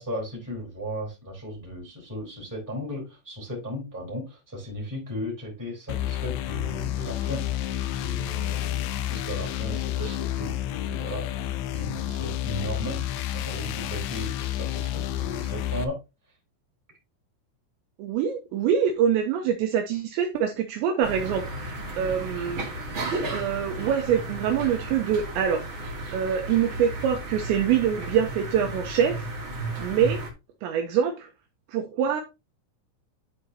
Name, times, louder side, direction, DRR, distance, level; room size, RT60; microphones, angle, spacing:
voice 1, 0.0-7.4 8.0-13.0 13.3-16.0, equal, 5° right, 3.3 m, -36 dB
sound 1, 5.9-15.8, left 12 dB, 85° left, 2.4 m, -30 dB
voice 2, 18.0-22.7 23.3-25.7 26.1-29.3 29.8-30.2 30.6-31.3 31.7-32.2, right 8 dB, 80° right, 2.7 m, -25 dB
sound 2, 21.0-30.3, right 2 dB, 45° right, 1.6 m, -34 dB
12.5 x 4.9 x 2.8 m
omnidirectional pair, 6.0 m